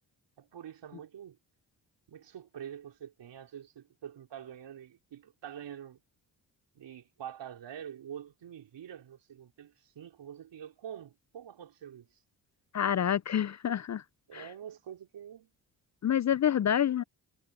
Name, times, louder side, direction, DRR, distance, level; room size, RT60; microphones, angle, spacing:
voice 1, 0.4-1.4 2.1-6.0 6.7-12.2 14.3-15.5 16.6-16.8, right 9 dB, 70° right, 4.5 m, -46 dB
voice 2, 12.7-14.0 14.3-14.4 16.0-17.0, left 9 dB, 40° left, 0.5 m, -27 dB
supercardioid pair, 45°, 44 cm